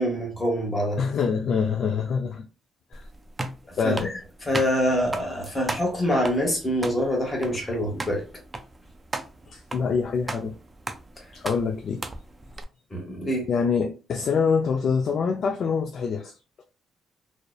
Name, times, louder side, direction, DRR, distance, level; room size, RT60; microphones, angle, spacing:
voice 1, 0.0-1.0 3.8-4.1 4.5-8.2 12.9-13.5, equal, 20° left, 0.9 m, -25 dB
voice 2, 1.0-2.4 2.9-3.1 3.8-4.1 9.5-10.5 11.3-12.0 13.5-16.6, left 5 dB, 60° left, 0.3 m, -25 dB
sound 1, 2.9-12.6, right 2 dB, 20° right, 0.3 m, -37 dB
2.6 x 2.0 x 2.3 m
cardioid pair, 90°, 0 cm